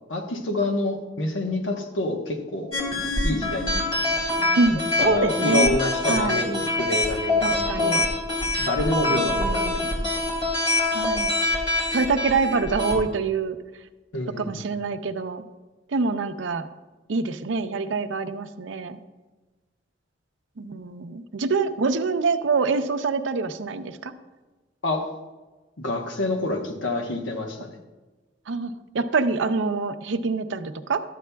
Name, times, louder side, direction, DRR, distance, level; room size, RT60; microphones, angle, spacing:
voice 1, 0.1-2.7 3.2-8.1 8.6-10.1 14.1-14.6 24.8-25.1 25.8-27.8, left 2 dB, 90° left, 2 dB, 1.0 m, -28 dB
sound 1, 2.7-13.0, left 2 dB, 25° left, 2.3 m, -25 dB
voice 2, 4.6-5.8 6.1-6.4 7.4-8.0 9.1-9.9 10.9-11.4 11.9-13.6 14.4-15.4 15.9-16.7 17.1-19.0 20.6-24.1 28.5-31.0, right 4 dB, 85° right, 9 dB, 0.6 m, -25 dB
12.5 x 8.4 x 2.3 m, 1.2 s
head